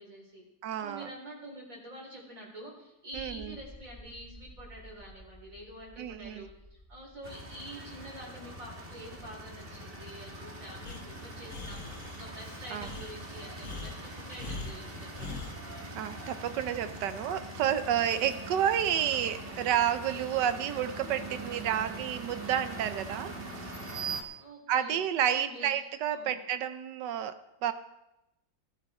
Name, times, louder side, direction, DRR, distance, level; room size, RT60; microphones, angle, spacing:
voice 1, 0.0-0.5 0.8-15.4 24.4-25.7 26.1-26.4, right 1 dB, 50° right, -2 dB, 4.1 m, -47 dB
voice 2, 0.6-1.1 3.1-3.6 6.0-6.5 12.7-12.9 15.9-23.7 24.7-27.7, right 9 dB, 85° right, 11 dB, 1.4 m, -30 dB
sound 1, 3.1-13.2, equal, 15° left, 0.9 m, -54 dB
sound 2, 7.2-24.2, right 2 dB, 35° right, 1.6 m, -42 dB
Breathing, 10.8-15.6, left 3 dB, 50° left, 1.7 m, -42 dB
15.0 x 13.0 x 4.3 m, 0.90 s
omnidirectional pair, 1.8 m